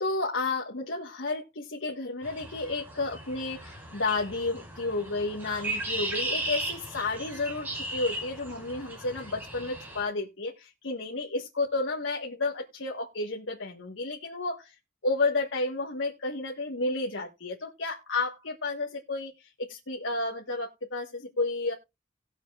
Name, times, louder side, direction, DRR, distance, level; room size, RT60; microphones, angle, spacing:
voice 1, 0.0-14.7 15.0-21.7, left 3 dB, 75° left, -1 dB, 1.4 m, -31 dB
sound 1, 2.2-10.0, right 1 dB, 10° right, 5.6 m, -36 dB
18.5 x 7.1 x 2.4 m, 0.23 s
head